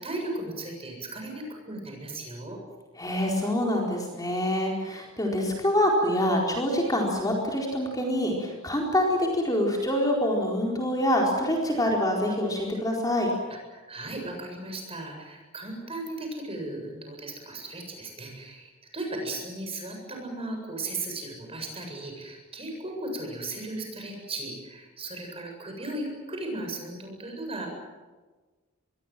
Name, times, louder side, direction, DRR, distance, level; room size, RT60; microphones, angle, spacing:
voice 1, 0.0-2.6 13.7-27.7, right 2 dB, 30° right, 2 dB, 7.8 m, -36 dB
voice 2, 3.0-13.3, left 1 dB, 15° left, -1 dB, 4.4 m, -26 dB
25.5 x 22.0 x 7.7 m, 1.3 s
head